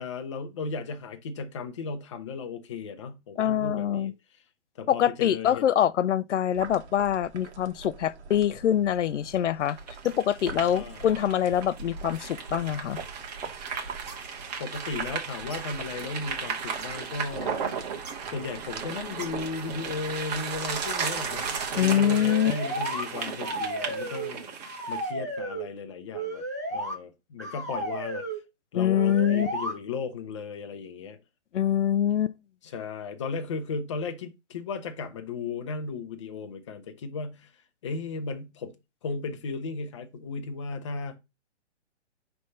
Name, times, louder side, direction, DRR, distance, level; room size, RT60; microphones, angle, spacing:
voice 1, 0.0-4.4 4.7-5.7 10.7-11.1 14.6-17.6 18.3-28.4 28.7-31.2 32.6-38.7 39.0-41.2, left 4 dB, 25° left, 0.6 m, -36 dB
voice 2, 3.4-4.1 4.9-9.8 10.0-13.0 21.8-22.5 28.7-29.5 31.5-32.4, left 10 dB, 85° left, 0.5 m, -24 dB
sound 1, 6.5-21.9, right 4 dB, 70° right, 1.4 m, -44 dB
sound 2, 9.7-25.1, right 6 dB, 35° right, 1.3 m, -35 dB
sound 3, 22.0-23.1 23.4-24.3 24.6-25.7 26.1-26.9 27.4-28.4 28.9-29.7, right 1 dB, 15° right, 0.4 m, -33 dB
5.2 x 3.3 x 5.5 m
hypercardioid pair, 165°, 35 cm